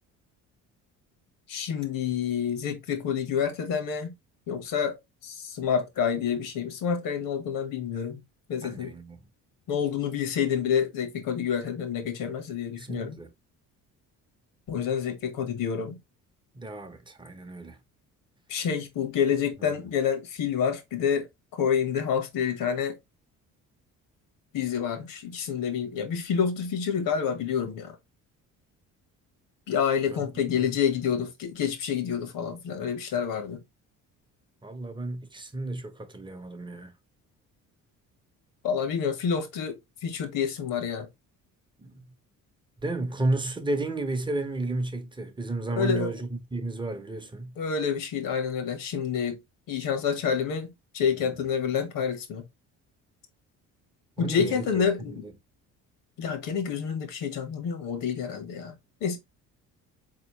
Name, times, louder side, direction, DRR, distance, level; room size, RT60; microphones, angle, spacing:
voice 1, 1.5-4.1 4.5-5.0 5.2-8.2 8.5-8.9 9.7-13.2 14.7-16.0 18.5-21.3 21.5-23.0 24.5-28.0 29.7-33.6 38.6-41.1 45.7-46.1 47.6-49.4 49.7-52.5 54.2-55.2 56.2-59.2, left 7 dB, 75° left, 1.2 m, -28 dB
voice 2, 8.6-9.2 12.8-13.3 16.5-17.8 30.1-30.3 30.6-30.7 34.6-36.9 41.8-42.0 42.8-47.5 51.2-51.3 54.2-54.8 55.1-55.2, right 2 dB, 15° right, 0.7 m, -32 dB
4.0 x 3.0 x 2.9 m
cardioid pair, 110°, 33 cm